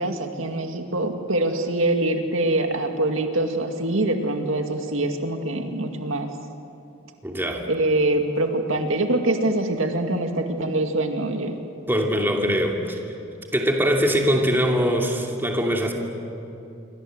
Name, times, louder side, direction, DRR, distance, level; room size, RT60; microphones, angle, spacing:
voice 1, 0.0-6.3 7.7-11.6, right 2 dB, 75° right, 4 dB, 2.2 m, -24 dB
voice 2, 7.2-7.6 11.9-13.0 13.5-15.9, equal, 10° right, 0 dB, 2.8 m, -22 dB
27.5 x 24.0 x 7.9 m, 2.7 s
head